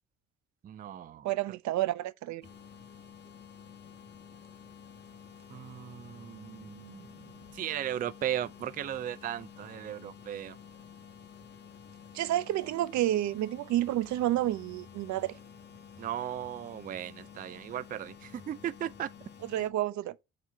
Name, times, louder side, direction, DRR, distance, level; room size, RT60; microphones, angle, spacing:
voice 1, 0.6-1.6 5.5-10.6 16.0-19.1, right 11 dB, 30° right, 0.4 m, -37 dB
voice 2, 1.2-2.4 12.1-15.3 19.5-20.1, right 14 dB, 70° right, 0.6 m, -30 dB
sound 1, 2.4-19.7, left 7 dB, 35° left, 1.2 m, -51 dB
4.6 x 4.2 x 5.4 m
cardioid pair, 120°, 30 cm